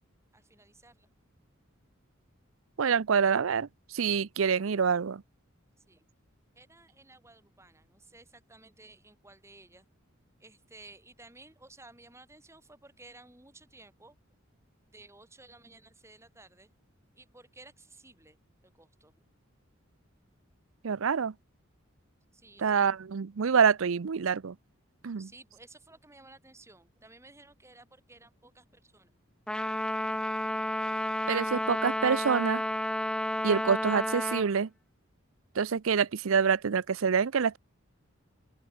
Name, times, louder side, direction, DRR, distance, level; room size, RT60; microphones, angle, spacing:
voice 1, 0.3-1.1 5.8-6.0 6.6-9.9 10.4-14.2 14.9-16.7 17.2-18.4 18.7-19.2 22.3-22.9 25.2-29.1, right 2 dB, 15° right, 4.0 m, -55 dB
voice 2, 2.8-5.2 20.8-21.3 22.6-24.6 25.0-25.3 31.3-32.6 33.4-34.7 35.6-37.6, right 6 dB, 75° right, 0.5 m, -26 dB
Trumpet, 29.5-34.5, left 1 dB, 5° left, 0.4 m, -31 dB
open air
head